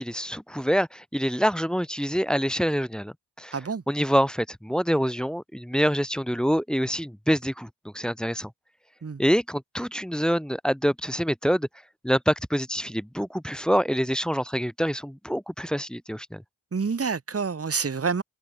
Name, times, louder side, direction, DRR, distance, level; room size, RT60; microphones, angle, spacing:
voice 1, 0.0-3.6 3.9-8.5 9.2-11.7 12.0-16.4, equal, ahead, 1.1 m, -26 dB
voice 2, 3.5-3.8 9.0-9.2 16.7-18.2, right 5 dB, 30° right, 1.6 m, -27 dB
supercardioid pair, 45°, 43 cm